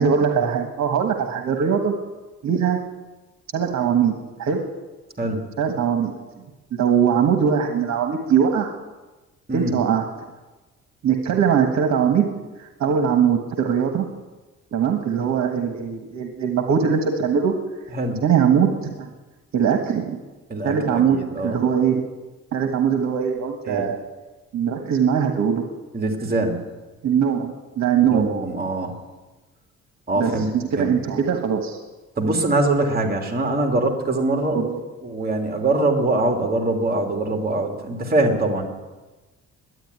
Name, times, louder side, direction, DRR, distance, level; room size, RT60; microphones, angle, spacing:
voice 1, 0.0-1.9 2.4-2.8 3.5-4.1 4.4-4.6 5.6-6.2 6.7-8.7 9.5-10.0 11.0-12.3 12.6-14.1 14.7-17.5 18.2-19.1 19.5-20.2 20.6-22.1 22.5-24.0 24.5-25.6 27.0-28.3 30.2-31.8 34.5-34.8, right 7 dB, 65° right, 5 dB, 1.4 m, -21 dB
voice 2, 20.5-21.6 23.6-23.9 25.9-26.7 28.0-29.0 30.1-30.5 30.8-30.9 32.2-34.6 35.0-38.6, right 2 dB, 30° right, 3 dB, 2.8 m, -23 dB
12.0 x 9.5 x 9.6 m, 1.2 s
cardioid pair, 90°, 30 cm